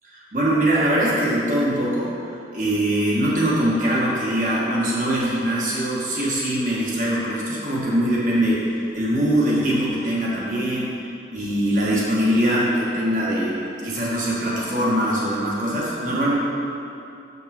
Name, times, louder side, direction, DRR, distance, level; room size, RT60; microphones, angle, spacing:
voice 1, 0.3-11.0 11.3-16.3, right 1 dB, 45° right, -6 dB, 1.7 m, -22 dB
7.3 x 6.8 x 4.4 m, 2.7 s
head